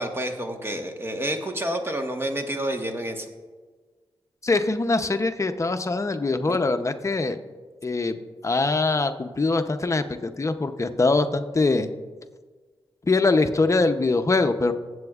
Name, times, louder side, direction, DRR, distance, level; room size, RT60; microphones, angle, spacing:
voice 1, 0.0-3.3 6.5-6.6, right 1 dB, 25° right, 4 dB, 1.3 m, -29 dB
voice 2, 4.4-7.4 7.8-8.2 8.4-11.9 13.1-14.7, left 3 dB, 35° left, 8 dB, 0.7 m, -23 dB
21.0 x 7.8 x 2.4 m, 1.4 s
cardioid pair, 55°, 9 cm